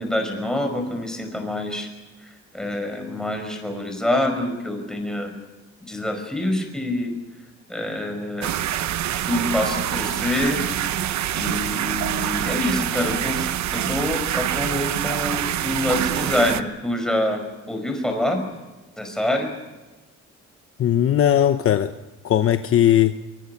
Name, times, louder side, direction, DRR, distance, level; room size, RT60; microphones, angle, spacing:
voice 1, 0.0-1.9 2.2-5.3 5.8-7.2 7.7-8.5 9.3-10.6 11.3-18.4 19.0-19.5, left 1 dB, ahead, 4 dB, 5.3 m, -26 dB
sound 1, 8.4-16.6, right 12 dB, 65° right, 1.1 m, -25 dB
voice 2, 20.8-21.9 22.2-23.2, left 11 dB, 45° left, 9 dB, 0.9 m, -18 dB
25.0 x 23.5 x 5.8 m, 1.2 s
cardioid pair, 150°, 30 cm